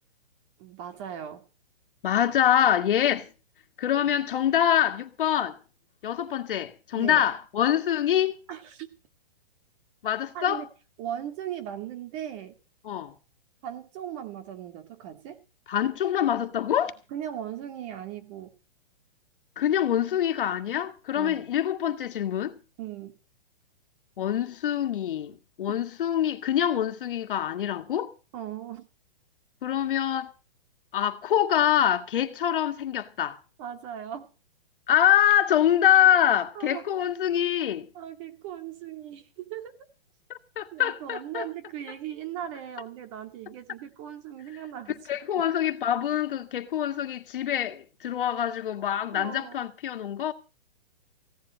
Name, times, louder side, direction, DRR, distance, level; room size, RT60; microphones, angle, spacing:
voice 1, 0.6-1.5 3.0-3.1 7.0-7.3 8.5-8.9 10.3-10.7 11.0-12.5 13.6-15.4 17.1-18.5 21.1-21.5 22.8-23.2 25.7-25.8 28.3-28.9 33.6-34.3 36.0-36.1 36.5-36.9 37.9-39.8 40.7-45.0 45.4-45.5 49.1-49.7, right 10 dB, 30° right, 2.2 m, -38 dB
voice 2, 2.0-3.3 3.8-5.6 6.0-8.4 10.0-10.6 12.9-13.1 15.7-16.9 19.6-22.6 24.2-28.1 29.6-30.3 30.9-33.4 34.9-37.9 40.6-41.5 45.1-50.3, left 10 dB, 60° left, 1.9 m, -25 dB
16.5 x 11.0 x 6.2 m
hypercardioid pair, 155°, 30 cm